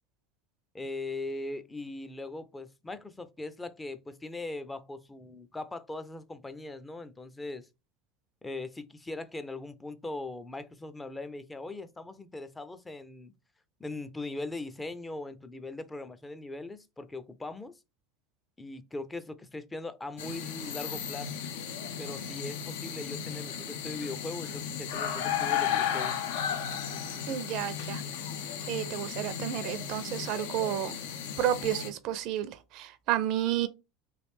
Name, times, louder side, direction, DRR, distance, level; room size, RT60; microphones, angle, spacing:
voice 1, 0.7-7.7 8.4-13.3 13.8-17.8 18.6-21.4 22.0-26.2, left 2 dB, 15° left, 0.4 m, -40 dB
sound 1, 20.2-31.9, left 8 dB, 75° left, 0.5 m, -34 dB
voice 2, 27.3-28.0 28.7-31.0 31.4-33.7, right 12 dB, 60° right, 0.5 m, -31 dB
3.1 x 2.5 x 3.2 m
hypercardioid pair, 100°, 0 cm